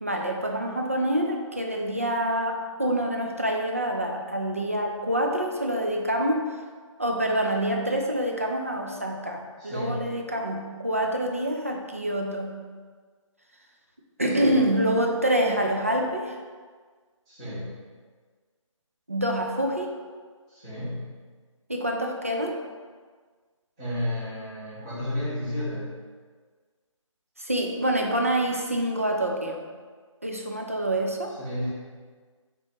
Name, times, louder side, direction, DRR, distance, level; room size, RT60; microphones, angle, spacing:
voice 1, 0.0-6.4 7.0-12.6 14.2-16.4 19.1-19.9 21.7-22.6 27.4-29.6 30.2-31.4, right 1 dB, 25° right, 2 dB, 0.3 m, -26 dB
voice 2, 9.6-10.0 14.4-14.6 17.3-17.7 20.5-21.0 23.8-25.9 31.4-31.7, left 1 dB, 10° right, -13 dB, 0.9 m, -32 dB
5.4 x 3.4 x 2.9 m, 1.5 s
hypercardioid pair, 175°, 17 cm